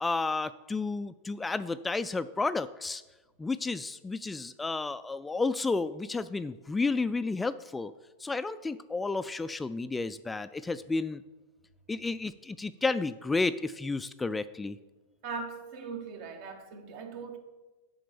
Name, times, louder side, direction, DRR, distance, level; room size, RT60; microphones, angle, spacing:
voice 1, 0.0-3.0 3.4-7.9 8.2-11.2 11.9-14.8, left 3 dB, 10° left, 0.3 m, -31 dB
voice 2, 15.2-17.4, right 4 dB, 55° right, 1.4 m, -40 dB
7.4 x 5.1 x 7.0 m
hypercardioid pair, 110°, 0 cm